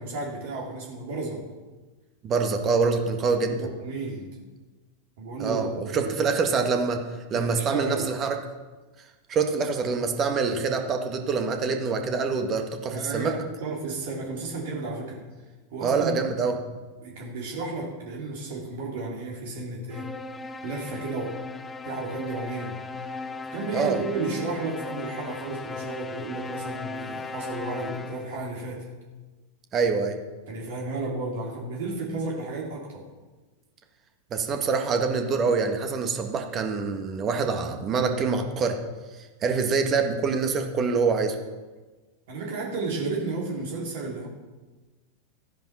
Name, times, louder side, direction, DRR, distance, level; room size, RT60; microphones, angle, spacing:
voice 1, 0.0-1.4 3.5-4.3 5.2-6.3 7.3-8.1 12.9-15.2 15.7-16.2 17.0-20.1 20.6-21.4 21.8-22.8 23.5-28.9 30.5-33.0 42.3-44.3, right 3 dB, 55° right, -1 dB, 3.0 m, -33 dB
voice 2, 2.2-3.6 5.4-7.1 7.3-8.4 9.3-13.3 15.8-16.6 23.7-24.0 29.7-30.2 34.3-38.8 39.4-41.4, right 5 dB, 30° right, 5 dB, 1.8 m, -25 dB
sound 1, 19.9-28.4, left 3 dB, 15° left, 0.7 m, -37 dB
14.0 x 10.0 x 5.9 m, 1.3 s
figure-of-eight pair, 90°, 0 cm